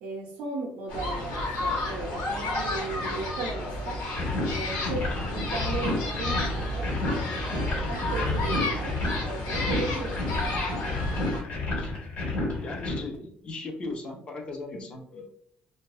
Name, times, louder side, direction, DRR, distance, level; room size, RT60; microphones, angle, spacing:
voice 1, 0.0-4.0 4.5-9.0 9.2-10.2, right 3 dB, 85° right, -2 dB, 0.5 m, -36 dB
sound 1, 0.9-11.4, left 2 dB, 85° left, 0.9 m, -31 dB
sound 2, 4.1-13.0, left 2 dB, 55° left, 1.1 m, -31 dB
voice 2, 11.2-11.9 12.6-15.3, left 3 dB, 30° left, 2 dB, 0.4 m, -38 dB
2.6 x 2.2 x 2.3 m, 0.65 s
cardioid pair, 160°, 3 cm